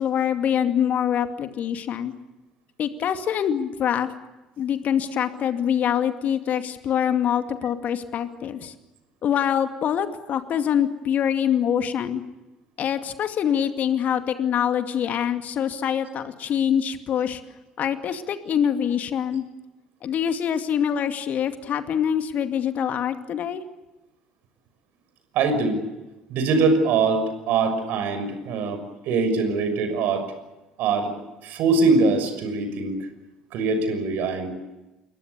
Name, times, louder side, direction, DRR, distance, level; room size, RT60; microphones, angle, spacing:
voice 1, 0.0-2.1 2.8-4.1 4.6-8.7 9.2-12.2 12.8-17.4 17.8-19.4 20.0-23.6, left 9 dB, 45° left, 8 dB, 2.4 m, -24 dB
voice 2, 25.3-25.8 26.3-30.3 30.8-31.1 31.4-33.0 33.5-34.5, right 4 dB, 55° right, 9 dB, 6.3 m, -22 dB
29.0 x 23.0 x 6.9 m, 1.0 s
figure-of-eight pair, 55°, 4 cm